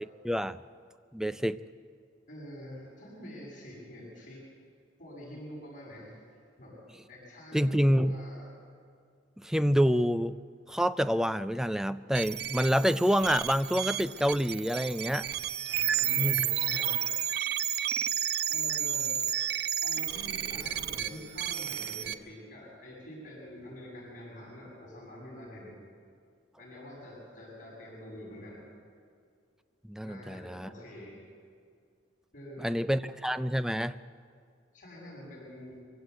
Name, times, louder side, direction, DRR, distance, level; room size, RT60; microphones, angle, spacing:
voice 1, 0.2-0.6 1.1-1.6 7.5-8.2 9.4-10.3 10.7-15.3 16.2-16.4 29.9-30.7 32.6-34.0, equal, 5° right, 13 dB, 0.4 m, -27 dB
voice 2, 2.3-4.4 5.0-6.2 6.6-6.8 7.1-8.5 15.7-17.1 18.5-19.4 19.8-25.8 26.6-28.6 30.0-31.2 32.3-33.0 34.7-35.8, equal, 45° left, -4 dB, 7.5 m, -46 dB
sound 1, 12.1-22.1, right 10 dB, 60° right, 0.7 m, -31 dB
24.0 x 16.0 x 8.3 m, 2.2 s
head